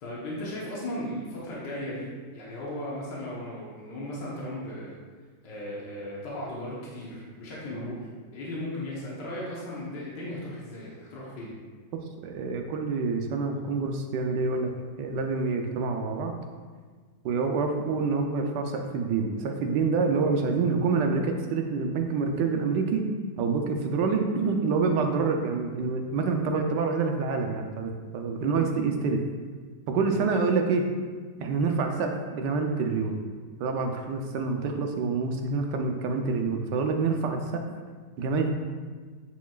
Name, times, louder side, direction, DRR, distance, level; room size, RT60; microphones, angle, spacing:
voice 1, 0.0-5.0 5.4-8.1 8.3-11.6 28.4-28.6 30.1-30.2, left 1 dB, 80° left, -6 dB, 1.8 m, -36 dB
voice 2, 12.2-14.7 15.0-16.3 17.2-23.0 23.4-29.2 29.9-30.8 31.4-33.2 33.6-37.6 38.2-38.5, right 4 dB, 80° right, 4 dB, 1.3 m, -27 dB
9.1 x 4.6 x 2.4 m, 1.5 s
omnidirectional pair, 1.9 m